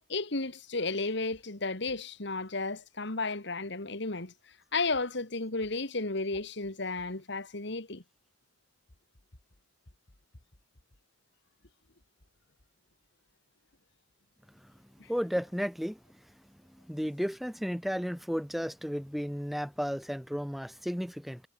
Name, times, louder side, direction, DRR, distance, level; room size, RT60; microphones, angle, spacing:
voice 1, 0.1-4.3 4.7-8.0 15.0-15.1, left 3 dB, 60° left, 2.2 m, -33 dB
voice 2, 15.1-16.0 16.7-21.4, equal, ahead, 3.9 m, -33 dB
head